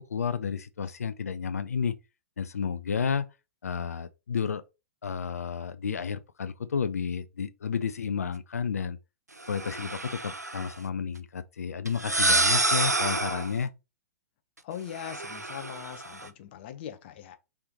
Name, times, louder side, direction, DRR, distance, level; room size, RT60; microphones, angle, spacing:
voice 1, 0.1-1.9 2.4-3.3 3.6-4.6 5.0-9.0 9.5-13.7, left 6 dB, 70° left, 0.5 m, -31 dB
sound 1, 9.4-10.7 11.9-13.6 14.9-16.3, right 2 dB, 90° right, 0.5 m, -28 dB
voice 2, 14.6-17.4, left 9 dB, 40° left, 0.8 m, -40 dB
4.9 x 3.5 x 2.9 m
figure-of-eight pair, 110°, 9 cm